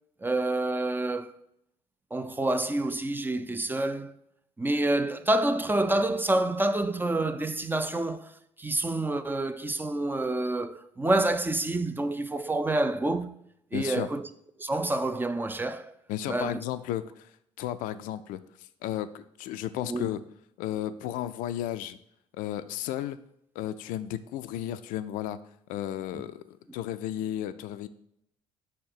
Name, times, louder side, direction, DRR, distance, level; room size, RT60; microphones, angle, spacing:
voice 1, 0.2-1.3 2.1-4.1 4.6-8.3 8.6-13.4 13.7-14.3 14.6-15.9 16.3-16.6 19.9-20.1, right 2 dB, 10° right, 0.5 m, -28 dB
voice 2, 13.7-14.1 16.1-20.2 20.6-22.0 22.3-23.2 23.6-25.4 25.7-27.9, left 12 dB, 60° left, 0.4 m, -34 dB
5.8 x 4.3 x 5.7 m
figure-of-eight pair, 50°, 16 cm